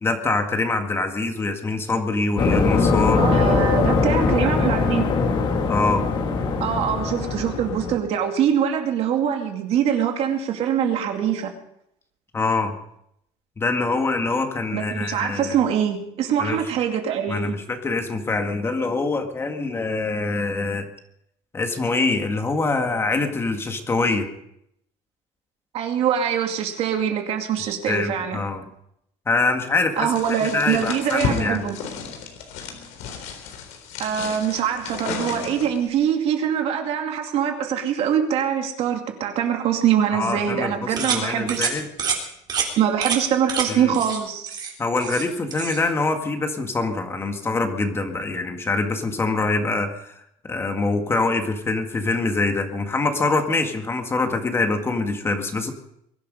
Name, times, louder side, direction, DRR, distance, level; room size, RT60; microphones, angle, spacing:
voice 1, 0.0-3.2 5.7-6.0 12.3-12.8 13.6-15.6 16.4-16.6 17.3-20.9 21.5-24.3 27.6-28.7 29.3-30.1 30.4-31.7 40.1-41.9 43.7-43.9 44.8-55.7, left 3 dB, 20° left, 5 dB, 1.9 m, -24 dB
sound 1, 2.4-8.0, left 4 dB, 40° left, 2.5 m, -21 dB
voice 2, 3.2-5.1 6.6-11.5 14.7-17.6 25.7-28.4 30.0-31.8 34.0-41.6 42.8-44.5, right 9 dB, 55° right, 4 dB, 2.5 m, -23 dB
sound 2, 30.2-35.9, left 6 dB, 80° left, 3.8 m, -33 dB
sound 3, 41.0-41.2 41.5-41.7 42.0-42.2 42.5-42.7 43.0-43.2 43.5-43.7 43.9-44.2 44.5-45.3 45.5-45.8, right 6 dB, 35° right, 3.7 m, -26 dB
22.5 x 11.5 x 5.4 m, 0.75 s
cardioid pair, 140°, 12 cm